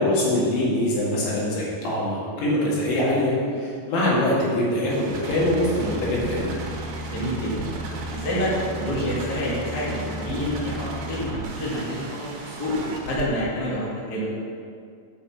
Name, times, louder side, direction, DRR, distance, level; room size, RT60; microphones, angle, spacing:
voice 1, 0.0-6.6, left 1 dB, 80° left, -7 dB, 4.6 m, -23 dB
sound 1, 4.9-13.2, right 2 dB, 75° right, 3.1 m, -33 dB
voice 2, 7.0-7.7 8.1-12.7 13.1-14.3, equal, 30° left, -8 dB, 2.0 m, -28 dB
8.5 x 5.7 x 7.0 m, 2.3 s
omnidirectional pair, 5.2 m